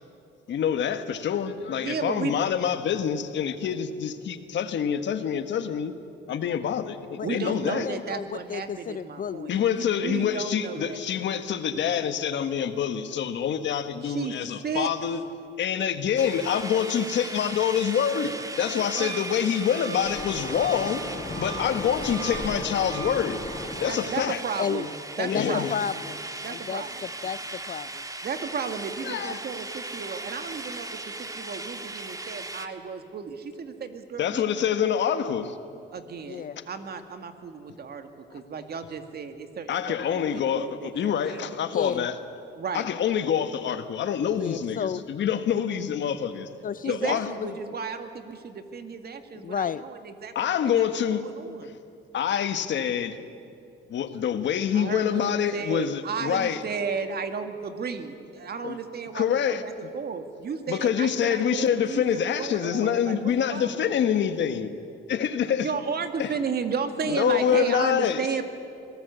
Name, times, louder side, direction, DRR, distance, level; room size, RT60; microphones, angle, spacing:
voice 1, 0.5-5.9 6.3-7.9 9.5-15.2 15.6-21.0 21.3-23.4 23.8-24.4 25.3-25.8 29.0-29.4 34.2-35.6 38.3-38.4 39.7-42.2 42.7-46.5 46.9-47.3 50.3-51.2 51.6-51.8 52.1-53.2 53.9-56.6 58.6-58.8 59.1-59.6 60.7-64.7 65.1-65.7 66.2-66.4 67.0-68.2, left 8 dB, 65° left, 9 dB, 1.5 m, -26 dB
voice 2, 1.8-2.3 3.4-3.6 4.4-4.5 7.2-11.0 14.0-14.3 14.6-14.9 18.7-19.2 23.9-25.6 26.4-27.0 28.2-34.4 35.9-39.7 40.0-41.5 42.5-42.9 46.8-51.7 54.7-63.9 65.6-68.4, right 5 dB, 55° right, 7 dB, 2.0 m, -34 dB
voice 3, 7.2-7.5 7.8-9.6 24.6-24.9 25.2-25.4 25.7-26.2 26.5-28.0 36.3-36.6 41.7-42.1 44.4-45.0 46.6-47.5 49.4-49.8, left 8 dB, 45° left, 15 dB, 0.5 m, -32 dB
sound 1, 16.2-32.7, right 2 dB, 15° right, 1.6 m, -38 dB
Wind instrument woodwind instrument, 19.0-23.2, right 6 dB, 75° right, 2.7 m, -40 dB
Waves surf, 20.0-24.0, left 2 dB, 25° left, 4.5 m, -36 dB
25.5 x 18.0 x 8.2 m, 2.6 s
cardioid pair, 90°, 20 cm